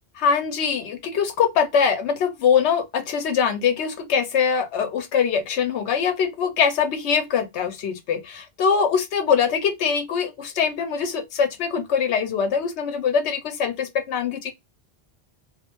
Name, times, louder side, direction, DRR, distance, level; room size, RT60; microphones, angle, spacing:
voice 1, 0.2-14.5, left 6 dB, 85° left, 0.9 m, -23 dB
2.3 x 2.1 x 2.8 m
omnidirectional pair, 1.1 m